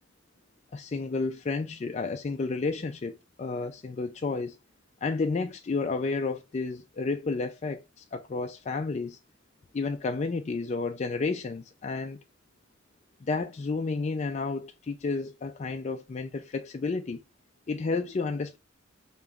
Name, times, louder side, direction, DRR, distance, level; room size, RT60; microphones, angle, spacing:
voice 1, 0.7-4.6 5.0-9.2 9.7-12.2 13.2-17.2 17.7-18.6, left 3 dB, 35° left, 0.4 m, -31 dB
3.5 x 3.0 x 3.7 m
head